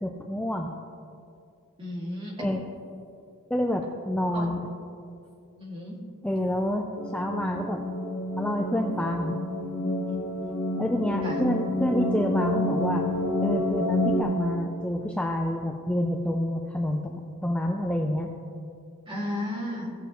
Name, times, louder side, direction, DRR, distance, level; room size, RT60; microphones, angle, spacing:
voice 1, 0.0-0.7 2.4-2.6 3.5-4.6 6.2-7.8 8.4-9.3 10.8-13.1 13.4-18.3, left 1 dB, 5° left, 1 dB, 0.4 m, -28 dB
voice 2, 1.8-2.4 4.3-4.5 5.6-6.0 10.1-10.6 11.2-11.4 19.1-19.9, left 1 dB, 25° right, -4 dB, 2.2 m, -34 dB
sound 1, 7.0-14.2, left 1 dB, 45° left, 1.6 m, -29 dB
16.5 x 6.8 x 3.0 m, 2.5 s
head